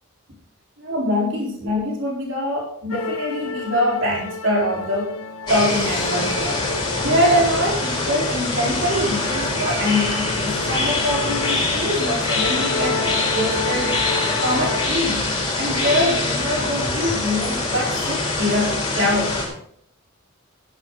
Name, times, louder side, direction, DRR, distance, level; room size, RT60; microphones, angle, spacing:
voice 1, 0.8-5.1 5.5-6.7 7.0-13.0 13.3-14.0 14.3-15.2 15.6-19.3, equal, 60° right, -2 dB, 4.1 m, -23 dB
sound 1, 2.9-14.9, left 5 dB, 85° left, 1.0 m, -31 dB
sound 2, 5.5-19.5, left 2 dB, 20° left, 3.5 m, -24 dB
12.5 x 11.0 x 4.0 m, 0.65 s
head